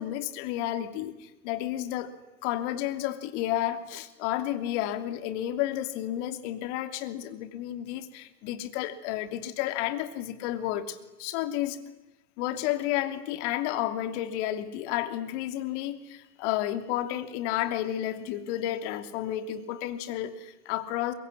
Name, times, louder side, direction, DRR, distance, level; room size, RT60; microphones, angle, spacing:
voice 1, 0.0-2.1 2.4-11.8 12.4-21.1, left 13 dB, 50° left, 9 dB, 2.9 m, -31 dB
23.5 x 21.5 x 10.0 m, 1.0 s
hypercardioid pair, 95°, 43 cm